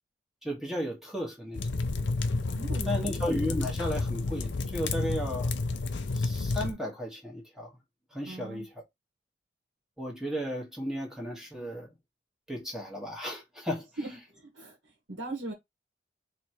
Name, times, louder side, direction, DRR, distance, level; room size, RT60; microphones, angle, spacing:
voice 1, 0.4-1.7 2.9-5.6 6.1-7.7 8.1-8.7 10.0-11.9 12.5-13.8, equal, 5° right, 1.3 m, -34 dB
sound 1, 1.5-6.7, left 3 dB, 80° left, 0.7 m, -30 dB
voice 2, 2.5-3.1 8.3-8.7 14.0-14.8 15.1-15.5, right 2 dB, 85° right, 1.7 m, -39 dB
3.3 x 3.2 x 4.5 m
head